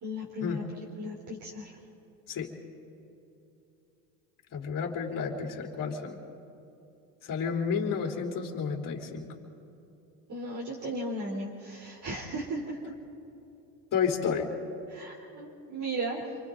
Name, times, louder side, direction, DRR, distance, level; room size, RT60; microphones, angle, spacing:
voice 1, 0.0-0.6 1.0-1.8 10.3-12.9 14.9-16.4, right 1 dB, 35° right, -3 dB, 3.9 m, -36 dB
voice 2, 4.5-6.2 7.2-9.3 13.9-14.5, left 6 dB, 40° left, 0 dB, 4.0 m, -31 dB
28.0 x 24.5 x 4.0 m, 2.8 s
supercardioid pair, 95°, 48 cm